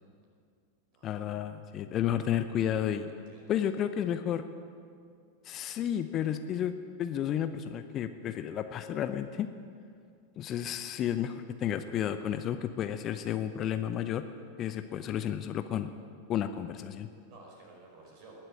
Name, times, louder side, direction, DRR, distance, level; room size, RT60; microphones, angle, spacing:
voice 1, 1.0-3.1 3.5-4.4 5.4-6.7 7.0-9.5 10.4-14.2 14.6-15.9 16.3-17.1, left 10 dB, 30° left, 9 dB, 0.7 m, -32 dB
voice 2, 3.0-3.5 17.2-18.4, right 3 dB, 45° right, -1 dB, 5.0 m, -54 dB
20.0 x 7.7 x 8.8 m, 2.2 s
figure-of-eight pair, 90°, 0 cm